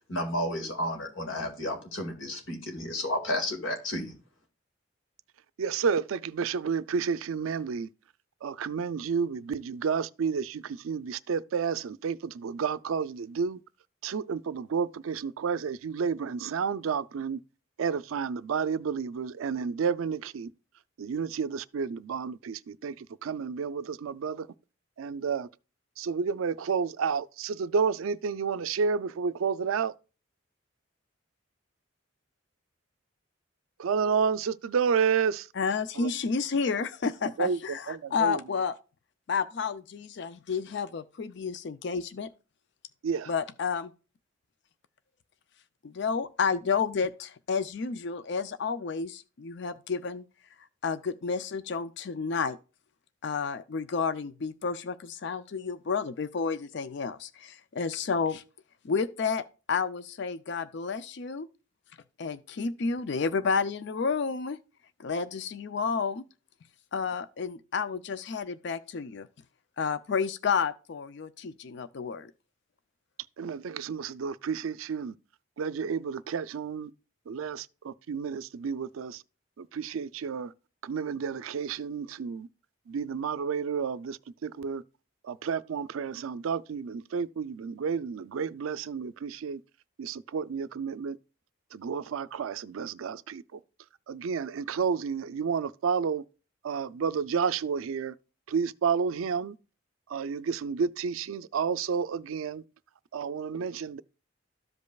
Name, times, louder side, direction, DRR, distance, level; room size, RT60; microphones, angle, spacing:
voice 1, 0.1-4.1, left 1 dB, 75° left, 2.0 m, -32 dB
voice 2, 5.6-7.9 8.4-13.6 14.0-17.4 17.8-20.5 21.0-22.9 23.2-24.5 25.0-25.5 26.0-29.9 33.8-35.4 36.0-36.1 37.4-37.6 37.9-38.4 43.0-43.3 73.4-75.1 75.6-76.9 77.3-79.2 79.6-80.5 80.8-82.5 82.9-84.8 85.3-89.6 90.0-91.2 91.7-93.4 94.1-96.2 96.6-98.1 98.5-99.5 100.1-102.6 103.1-104.0, right 6 dB, 90° right, 0.4 m, -30 dB
voice 3, 35.5-38.8 39.3-42.3 43.3-43.9 45.8-50.2 50.8-52.6 53.2-58.4 58.8-61.5 62.2-64.6 65.0-66.2 66.9-69.3 69.8-72.3, left 5 dB, 60° left, 0.4 m, -31 dB
13.5 x 5.2 x 2.3 m
head